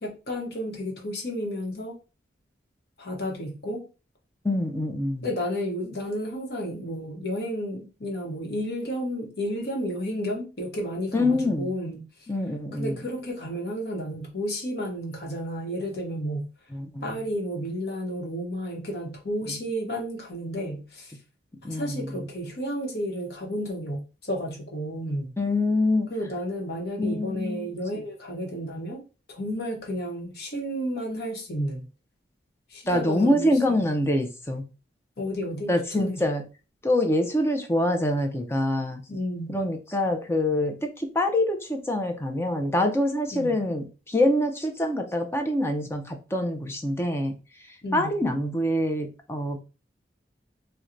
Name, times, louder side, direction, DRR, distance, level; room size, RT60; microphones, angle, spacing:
voice 1, 0.0-2.0 3.0-3.9 5.2-12.0 12.7-16.5 17.0-21.1 21.7-25.3 26.1-31.9 32.7-33.9 35.2-35.7 36.0-36.2 39.1-39.6 43.3-43.6 47.8-48.1, equal, 55° left, 0.9 m, -32 dB
voice 2, 4.4-5.3 11.1-11.7 12.3-13.0 16.7-17.2 19.5-19.6 21.6-22.3 25.4-26.1 27.0-27.7 32.9-34.6 35.7-36.4 36.8-39.0 39.5-47.3 47.9-49.6, left 1 dB, 15° left, 0.4 m, -25 dB
4.3 x 2.2 x 2.5 m
head